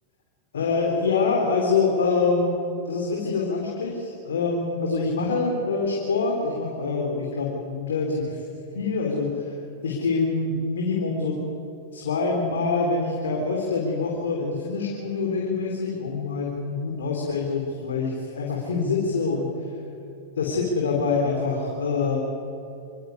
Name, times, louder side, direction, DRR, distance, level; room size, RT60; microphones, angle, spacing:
voice 1, 0.5-2.6 2.9-8.4 8.7-9.4 9.8-11.4 11.9-19.5 20.4-22.2, left 4 dB, 85° left, -1 dB, 4.1 m, -25 dB
27.0 x 15.0 x 9.7 m, 2.7 s
hypercardioid pair, 110°, 0 cm